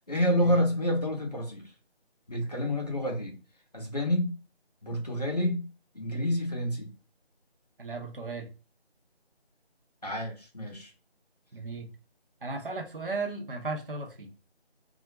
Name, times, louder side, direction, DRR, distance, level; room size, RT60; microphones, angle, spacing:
voice 1, 0.1-1.7 2.3-3.4 3.7-4.4 4.8-5.7 5.9-6.9 10.0-10.9, equal, 40° left, 0 dB, 0.6 m, -28 dB
voice 2, 7.8-8.5 11.5-11.9 12.4-14.3, right 3 dB, 55° right, 3 dB, 0.6 m, -35 dB
2.3 x 2.1 x 2.8 m, 0.33 s
figure-of-eight pair, 170°, 33 cm